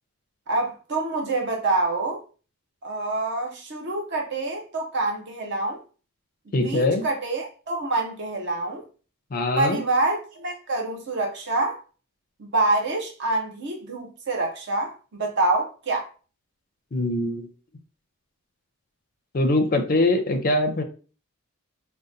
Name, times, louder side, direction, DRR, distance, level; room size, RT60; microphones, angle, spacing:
voice 1, 0.5-2.2 2.8-5.8 6.6-8.8 9.6-11.8 12.4-16.0, right 2 dB, 50° right, 0.6 m, -26 dB
voice 2, 6.5-7.0 9.3-9.8 16.9-17.5 19.3-20.8, left 2 dB, 40° left, 0.4 m, -22 dB
3.8 x 2.2 x 2.5 m
head